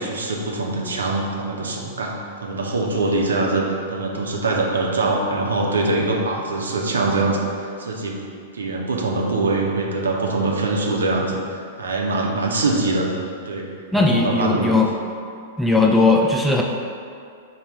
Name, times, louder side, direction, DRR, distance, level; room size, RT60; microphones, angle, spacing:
voice 1, 0.0-8.2 8.5-13.1 13.5-13.7 13.9-14.8, right 2 dB, 80° right, -1 dB, 0.6 m, -23 dB
voice 2, 13.9-14.9 15.6-16.6, left 3 dB, ahead, -1 dB, 0.4 m, -17 dB
5.1 x 2.1 x 3.5 m, 2.3 s
hypercardioid pair, 105°, 0 cm